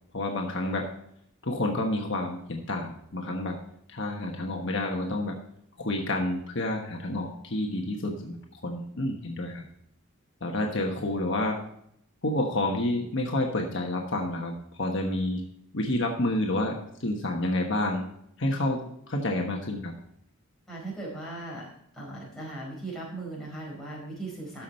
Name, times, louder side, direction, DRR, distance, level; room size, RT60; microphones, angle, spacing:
voice 1, 0.1-0.9 1.4-3.6 3.9-5.4 5.8-9.6 10.4-11.6 12.2-15.4 15.7-18.0 18.4-19.9, left 1 dB, 55° left, 1 dB, 1.2 m, -29 dB
voice 2, 20.7-24.6, right 2 dB, ahead, -5 dB, 4.4 m, -38 dB
13.0 x 6.0 x 4.3 m, 0.71 s
head